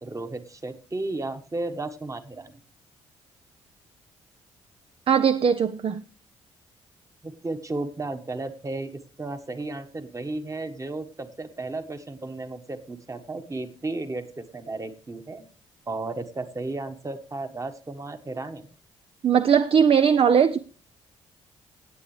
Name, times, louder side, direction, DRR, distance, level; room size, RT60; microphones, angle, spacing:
voice 1, 0.0-2.6 7.2-15.4 15.9-18.7, right 2 dB, 20° right, 1.4 m, -34 dB
voice 2, 5.1-6.0 19.2-20.6, right 7 dB, 40° right, 0.5 m, -19 dB
17.0 x 8.6 x 3.2 m
hypercardioid pair, 40°, 15 cm